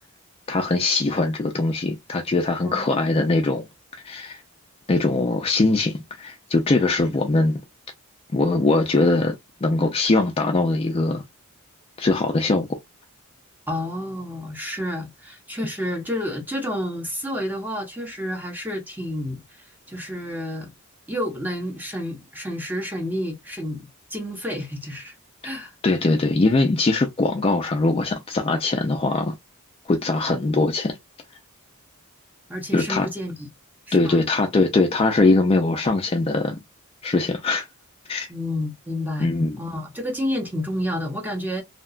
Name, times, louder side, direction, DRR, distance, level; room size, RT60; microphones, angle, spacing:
voice 1, 0.5-3.7 3.9-4.4 4.9-7.6 8.3-11.2 12.0-12.8 25.8-29.3 29.9-31.0 32.7-33.1 33.9-36.6 37.0-37.7 38.1-38.3 39.2-39.6, left 3 dB, 25° left, 0.3 m, -21 dB
voice 2, 2.6-3.0 7.0-7.1 13.7-19.4 19.9-20.7 21.1-25.1 25.4-25.7 32.5-33.5 33.9-34.2 38.3-41.6, left 1 dB, 10° right, 0.7 m, -30 dB
2.8 x 2.2 x 2.3 m
head